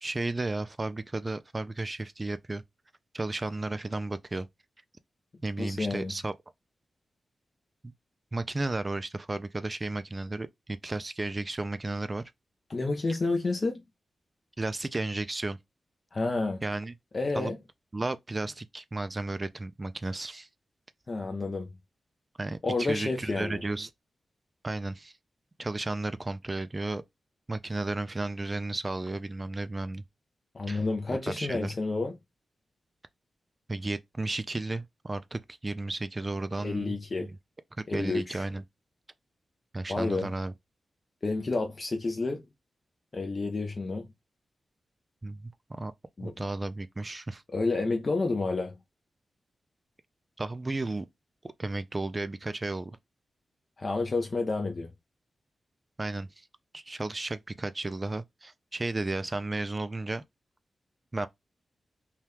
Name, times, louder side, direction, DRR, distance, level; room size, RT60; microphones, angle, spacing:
voice 1, 0.0-2.6 3.1-4.5 5.4-6.3 7.8-7.9 8.3-12.3 14.6-15.6 16.6-16.9 17.4-17.5 17.9-20.5 22.4-23.9 24.6-25.1 25.6-27.0 27.5-30.0 30.7-30.8 31.3-31.7 33.7-37.3 37.8-38.6 39.7-40.5 45.2-45.9 46.2-47.4 50.4-51.1 51.4-53.0 56.0-56.5 56.7-60.2 61.1-61.3, right 2 dB, 25° right, 0.3 m, -33 dB
voice 2, 5.6-6.1 12.7-13.8 16.1-16.6 17.1-17.6 21.1-21.7 22.6-23.6 30.5-32.1 36.6-37.3 37.9-38.5 39.9-40.3 41.2-42.5 43.1-44.1 46.2-46.3 47.5-48.7 53.8-54.9, left 3 dB, 40° left, 0.5 m, -30 dB
2.8 x 2.3 x 3.3 m
wide cardioid pair, 110°, 0 cm